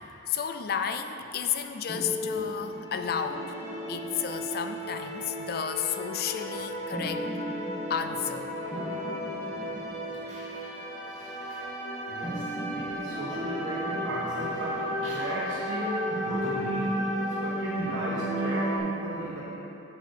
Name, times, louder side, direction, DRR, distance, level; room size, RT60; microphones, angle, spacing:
voice 1, 0.3-3.5 3.9-7.2 7.9-8.5, left 7 dB, 50° left, 8 dB, 0.4 m, -32 dB
sound 1, 1.9-18.8, equal, 15° left, 1.5 m, -33 dB
voice 2, 10.3-10.7 11.1-11.6 12.1-16.9 17.3-19.4, right 1 dB, 65° right, -8 dB, 1.2 m, -37 dB
6.9 x 6.4 x 4.8 m, 3.0 s
head